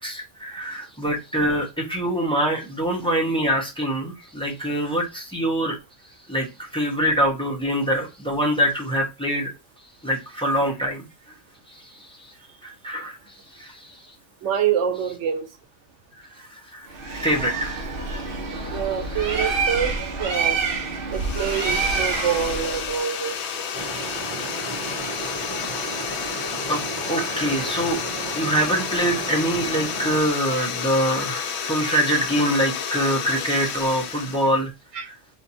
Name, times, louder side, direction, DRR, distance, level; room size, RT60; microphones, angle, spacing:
voice 1, 0.0-5.8 6.3-9.5 10.0-11.1 11.7-12.3 12.6-13.2 13.5-13.9 16.2-16.9 17.1-17.8 18.5-18.8 19.1-19.6 21.0-21.1 26.7-26.8 27.1-28.0 28.3-34.7 35.1-35.2, equal, 5° left, 1.1 m, -24 dB
voice 2, 14.4-15.5 18.7-19.9 20.2-20.6 21.1-23.6 34.9-35.1, right 8 dB, 90° right, 1.2 m, -26 dB
Bird, 16.9-22.9, right 4 dB, 55° right, 0.9 m, -27 dB
sound 1, 21.1-34.6, left 7 dB, 70° left, 0.9 m, -31 dB
sound 2, 23.7-30.2, right 3 dB, 25° left, 2.0 m, -34 dB
3.5 x 2.8 x 4.2 m
omnidirectional pair, 1.2 m